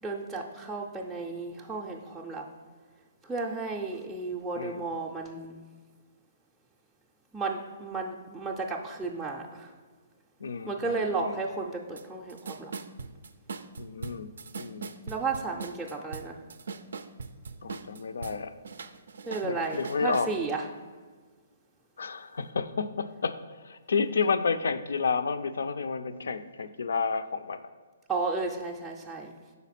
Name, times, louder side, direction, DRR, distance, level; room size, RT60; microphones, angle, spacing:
voice 1, 0.0-2.4 3.2-5.6 7.3-9.7 10.7-12.7 15.1-16.4 19.2-20.7 28.1-29.3, right 3 dB, 5° right, -2 dB, 0.4 m, -33 dB
voice 2, 10.4-11.4 13.8-14.3 14.6-14.9 17.6-18.5 19.4-20.3 22.0-23.4 23.6-27.6, left 5 dB, 85° left, 12 dB, 0.4 m, -30 dB
sound 1, 12.0-12.1 12.3-18.4 18.6-20.3, right 5 dB, 80° right, 0.4 m, -40 dB
5.6 x 4.1 x 5.8 m, 1.5 s
hypercardioid pair, 155°, 0 cm